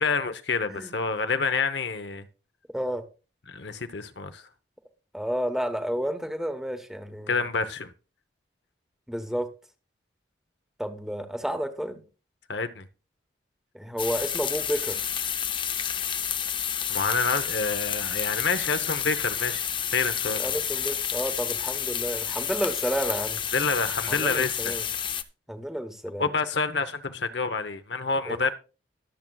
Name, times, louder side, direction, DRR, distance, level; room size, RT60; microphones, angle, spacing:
voice 1, 0.0-2.2 3.5-4.4 7.3-7.9 12.5-12.9 16.9-19.6 19.9-20.4 23.5-24.7 26.2-28.5, left 4 dB, 70° left, 0.9 m, -28 dB
voice 2, 2.7-3.0 5.1-7.5 9.1-9.5 10.8-12.0 13.7-15.0 20.4-23.4 24.1-24.8 25.5-26.3 28.2-28.5, equal, ahead, 1.0 m, -31 dB
sound 1, 14.0-25.2, left 9 dB, 25° left, 0.5 m, -30 dB
21.5 x 7.5 x 2.3 m
head